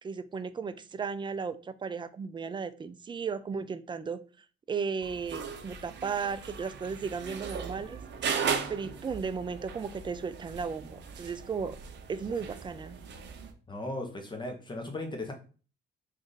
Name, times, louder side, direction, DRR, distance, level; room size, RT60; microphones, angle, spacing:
voice 1, 0.0-4.2 4.7-8.0 8.7-11.8 12.1-13.0, right 5 dB, 25° right, 12 dB, 0.3 m, -35 dB
sound 1, 5.0-13.5, right 6 dB, 60° right, 0.7 m, -37 dB
voice 2, 13.7-15.3, left 2 dB, 25° left, 4 dB, 1.0 m, -37 dB
3.1 x 2.5 x 3.9 m, 0.37 s
cardioid pair, 90°, 20 cm